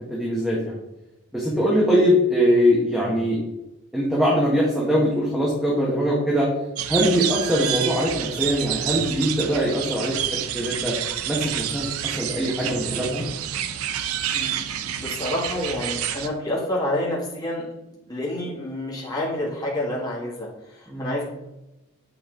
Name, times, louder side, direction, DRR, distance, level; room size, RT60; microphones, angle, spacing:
voice 1, 0.1-0.8 1.3-3.4 3.9-6.5 6.9-10.9 11.3-13.2 20.9-21.2, equal, ahead, -5 dB, 1.2 m, -22 dB
sound 1, 6.8-16.3, right 10 dB, 90° right, 0.5 m, -28 dB
voice 2, 14.3-17.7 18.1-21.2, left 1 dB, 20° left, -5 dB, 1.6 m, -28 dB
8.2 x 4.2 x 3.8 m, 0.93 s
head